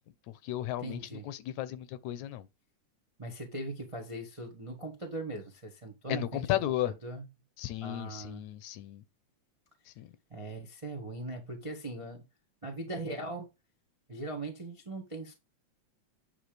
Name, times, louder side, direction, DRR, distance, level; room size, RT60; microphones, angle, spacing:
voice 1, 0.3-1.0 1.3-2.5 6.1-6.9 7.6-9.0 10.0-10.1, left 13 dB, 80° left, 2.1 m, -34 dB
voice 2, 0.8-1.3 3.2-7.3 7.8-8.4 10.3-12.2 12.6-13.5 14.1-15.3, right 2 dB, 40° right, 0.4 m, -40 dB
9.6 x 3.5 x 5.0 m
omnidirectional pair, 3.4 m